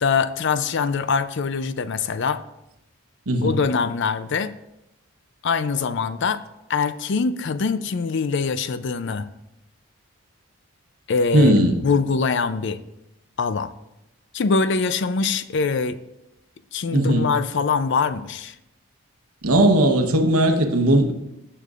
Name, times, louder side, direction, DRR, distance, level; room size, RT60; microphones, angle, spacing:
voice 1, 0.0-2.4 3.4-4.5 5.4-6.4 6.7-9.3 11.1-12.8 13.4-13.7 14.3-16.0 16.7-18.5, left 5 dB, 55° left, 13 dB, 0.4 m, -23 dB
voice 2, 11.3-11.8 16.9-17.3 19.4-21.1, right 1 dB, 85° right, 5 dB, 1.1 m, -17 dB
15.5 x 6.7 x 2.5 m, 0.89 s
head